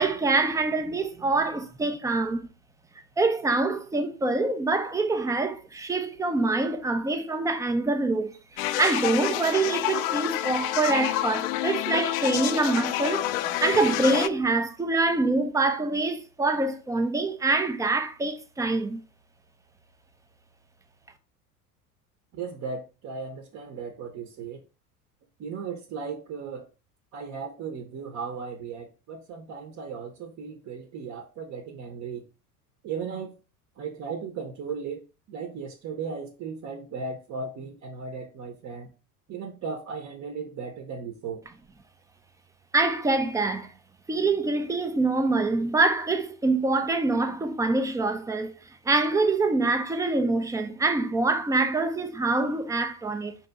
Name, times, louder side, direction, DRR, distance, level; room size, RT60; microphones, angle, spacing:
voice 1, 0.0-2.5 3.2-19.0 42.7-43.7 44.1-48.5 48.9-53.4, right 3 dB, 10° right, 0.4 m, -25 dB
sound 1, 8.6-14.3, left 13 dB, 60° left, 0.5 m, -28 dB
voice 2, 22.3-24.6 25.4-26.7 27.1-32.2 32.8-33.3 33.8-35.0 35.3-38.9 39.3-41.4, right 5 dB, 35° right, 0.8 m, -36 dB
5.0 x 2.9 x 3.4 m
hypercardioid pair, 75°, 46 cm